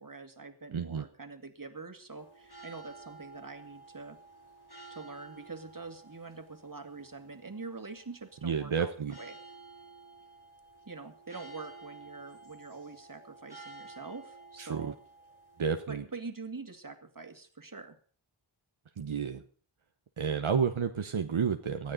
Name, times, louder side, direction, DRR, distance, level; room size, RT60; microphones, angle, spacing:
voice 1, 0.0-4.2 4.9-9.4 10.9-15.0 15.9-18.0, right 4 dB, 40° right, 6 dB, 2.2 m, -45 dB
voice 2, 0.7-1.0 8.4-9.2 14.6-14.9 15.6-16.0 19.0-19.4 20.2-21.9, right 6 dB, 75° right, 6 dB, 1.0 m, -31 dB
sound 1, 2.2-15.9, right 3 dB, 50° left, 3.6 m, -52 dB
19.0 x 13.0 x 4.0 m, 0.43 s
wide cardioid pair, 45°, 49 cm